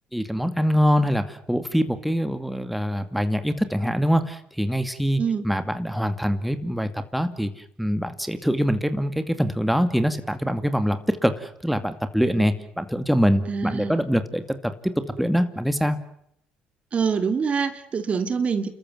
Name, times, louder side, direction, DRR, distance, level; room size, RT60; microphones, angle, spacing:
voice 1, 0.1-16.0, equal, ahead, 9 dB, 2.4 m, -24 dB
voice 2, 13.5-14.0 16.9-18.7, right 5 dB, 45° right, 10 dB, 2.3 m, -25 dB
29.0 x 14.0 x 9.4 m, 0.73 s
supercardioid pair, 70°, 3 cm